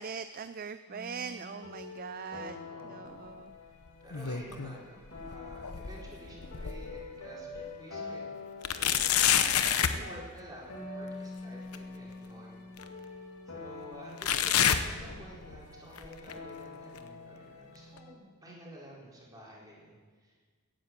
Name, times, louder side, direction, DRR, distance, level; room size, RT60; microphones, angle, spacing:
voice 1, 0.0-3.5, right 6 dB, 40° right, 11 dB, 0.4 m, -41 dB
sound 1, 0.9-18.1, left 3 dB, 65° left, 2.7 m, -46 dB
voice 2, 2.7-3.4 3.6-3.7 4.0-8.4 8.7-9.5 9.8-12.7 13.0-20.5, equal, 15° right, -5 dB, 4.1 m, -51 dB
sound 2, 3.9-4.8 5.2-7.1 7.6-7.7 8.6-10.0 11.7-11.8 12.8-12.9 14.2-15.6 16.0-16.3 17.0-17.1 18.0-18.1, left 9 dB, 80° left, 0.9 m, -28 dB
16.5 x 10.0 x 7.5 m, 1.5 s
head